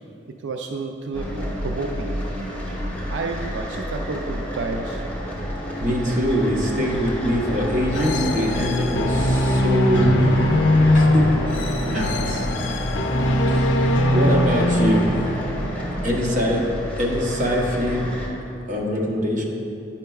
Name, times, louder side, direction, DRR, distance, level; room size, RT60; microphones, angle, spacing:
voice 1, 0.4-1.3 1.6-2.1 3.1-5.1, right 3 dB, 90° right, 4 dB, 0.4 m, -30 dB
sound 1, 1.1-18.3, equal, 10° left, 1.3 m, -31 dB
sound 2, 3.4-16.5, left 1 dB, 50° left, 0.7 m, -34 dB
voice 2, 5.8-10.5 10.9-11.3 11.9-12.5 13.5-15.1 16.0-16.7 17.0-18.1 18.7-19.4, equal, 45° right, -2 dB, 1.0 m, -23 dB
sound 3, 7.9-15.6, left 1 dB, 85° left, 0.5 m, -21 dB
9.3 x 5.7 x 2.3 m, 2.8 s
head